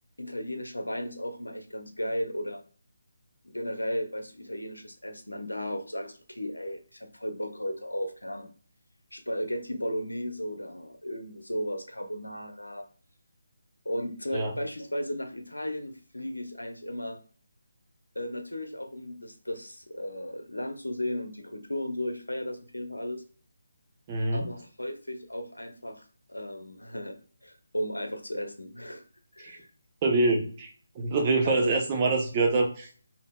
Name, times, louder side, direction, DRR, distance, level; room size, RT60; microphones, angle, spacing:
voice 1, 0.2-2.6 3.4-8.5 9.1-12.9 13.8-17.2 18.1-23.2 24.3-27.2 27.4-29.0 29.3-29.7 31.4-31.7, equal, 85° left, 6 dB, 0.8 m, -35 dB
voice 2, 24.1-24.5 29.4-29.6 30.0-30.7 30.9-32.9, right 3 dB, 25° right, 1 dB, 0.8 m, -25 dB
5.2 x 2.8 x 2.2 m, 0.42 s
figure-of-eight pair, 150°, 0 cm